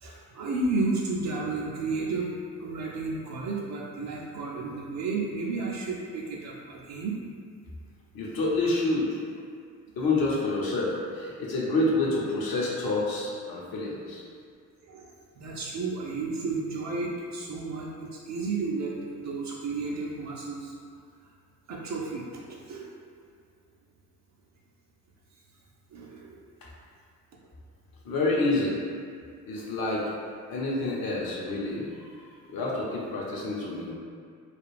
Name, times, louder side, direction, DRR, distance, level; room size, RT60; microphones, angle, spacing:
voice 1, 0.0-7.2 14.8-20.7 21.7-22.2 22.7-22.9 25.9-26.4, right 3 dB, 35° right, -3 dB, 0.5 m, -32 dB
voice 2, 8.1-9.2 10.0-14.2 28.0-28.8 29.4-30.1 30.5-31.9 32.5-33.9, left 2 dB, 50° left, -5 dB, 0.8 m, -28 dB
2.4 x 2.3 x 3.2 m, 2.2 s
figure-of-eight pair, 45°, 47 cm